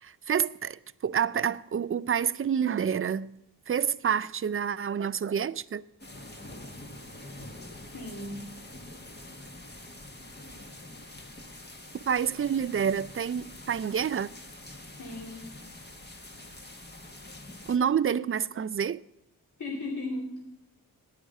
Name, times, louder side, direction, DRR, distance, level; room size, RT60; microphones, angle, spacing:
voice 1, 0.0-3.3 3.7-5.8 12.1-14.3 17.7-19.0, right 8 dB, 35° right, 0.4 m, -28 dB
sound 1, 6.0-17.8, left 1 dB, 25° left, 1.6 m, -46 dB
voice 2, 7.9-8.6 15.0-15.6 19.6-20.4, left 2 dB, 50° left, 2.6 m, -36 dB
9.9 x 9.4 x 6.4 m
cardioid pair, 60°, 39 cm